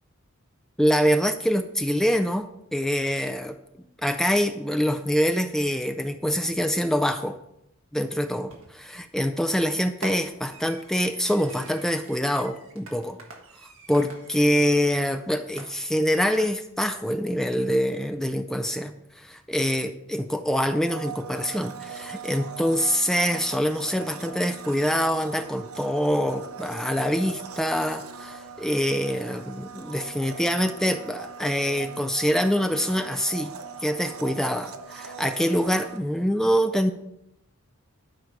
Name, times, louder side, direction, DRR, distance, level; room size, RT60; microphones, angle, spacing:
voice 1, 0.8-3.6 4.0-7.4 7.9-13.2 13.9-33.5 33.8-36.9, equal, ahead, 8 dB, 0.3 m, -25 dB
Fireworks, 8.5-8.9 10.0-15.1 15.6-16.9, right 3 dB, 65° right, 1.5 m, -45 dB
Domestic sounds home sounds, 20.9-36.0, right 5 dB, 80° right, 0.8 m, -40 dB
11.5 x 5.2 x 4.6 m, 0.79 s
head